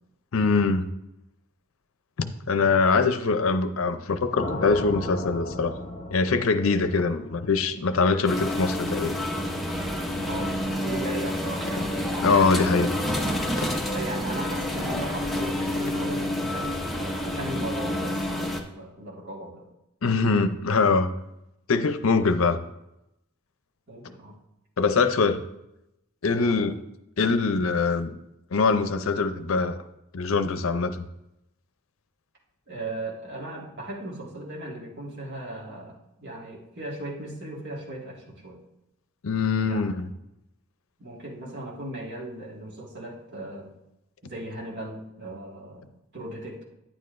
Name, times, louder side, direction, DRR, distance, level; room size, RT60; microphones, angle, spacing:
voice 1, 0.3-0.9 2.2-5.7 6.1-9.2 12.2-12.9 20.0-21.1 21.7-22.6 24.8-25.4 26.2-26.7 27.2-28.1 28.5-29.8 30.1-31.1 39.2-40.1, left 4 dB, 65° left, 10 dB, 0.6 m, -23 dB
sound 1, 4.4-8.4, left 1 dB, 40° left, 1.1 m, -36 dB
sound 2, 8.2-18.6, left 1 dB, ahead, 0.8 m, -28 dB
voice 2, 10.2-10.6 10.8-12.9 13.9-19.7 23.9-24.4 26.3-26.6 32.7-38.6 39.6-39.8 41.0-43.7 44.2-46.6, right 1 dB, 55° right, -3 dB, 1.9 m, -37 dB
10.0 x 8.7 x 2.6 m, 0.87 s
head